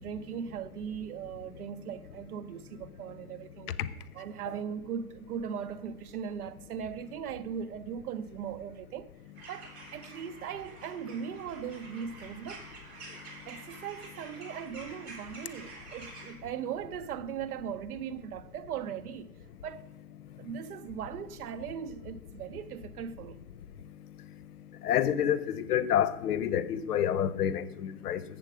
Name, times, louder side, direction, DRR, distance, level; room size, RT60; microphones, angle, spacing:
voice 1, 0.0-3.7 4.1-9.1 9.5-12.6 13.5-19.4 19.6-19.9 20.4-23.4, right 8 dB, 75° right, 0.7 m, -39 dB
sound 1, 9.3-16.3, right 2 dB, 45° right, 2.9 m, -48 dB
voice 2, 24.8-28.2, left 9 dB, 80° left, 0.8 m, -28 dB
7.6 x 7.2 x 4.8 m
hypercardioid pair, 160°, 45 cm